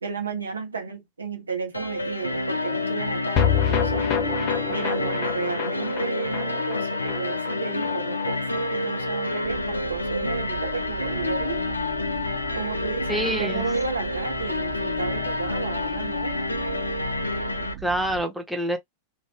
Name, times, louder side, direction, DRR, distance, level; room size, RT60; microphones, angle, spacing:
voice 1, 0.0-4.1 4.7-11.8 12.5-16.4, right 5 dB, 75° right, 0.8 m, -33 dB
sound 1, 1.7-17.7, left 2 dB, 80° left, 0.4 m, -28 dB
sound 2, 3.4-9.8 10.1-10.2 10.4-10.5, left 8 dB, 40° left, 0.6 m, -28 dB
sound 3, 9.4-18.2, right 12 dB, 55° right, 1.1 m, -39 dB
voice 2, 13.1-13.7 17.8-18.8, right 1 dB, 5° right, 0.7 m, -26 dB
2.6 x 2.2 x 3.1 m
figure-of-eight pair, 90°, 0 cm